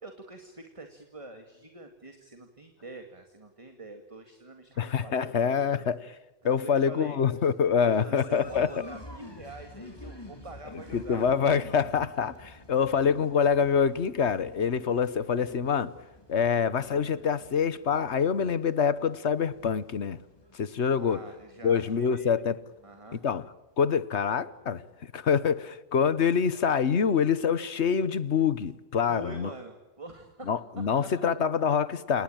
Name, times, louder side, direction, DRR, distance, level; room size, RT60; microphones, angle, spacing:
voice 1, 0.0-5.9 6.4-7.2 7.8-11.4 20.9-22.3 22.8-23.2 29.1-30.5 30.8-31.3, right 2 dB, 25° right, 2.3 m, -45 dB
voice 2, 4.8-6.0 6.4-8.7 10.9-15.9 16.3-20.2 20.5-21.2 21.6-22.6 23.2-23.4 23.8-29.5 30.5-32.2, left 6 dB, 60° left, 1.3 m, -26 dB
sound 1, 8.3-23.8 24.1-24.9, left 1 dB, 20° left, 3.3 m, -50 dB
28.0 x 19.5 x 8.9 m
omnidirectional pair, 1.3 m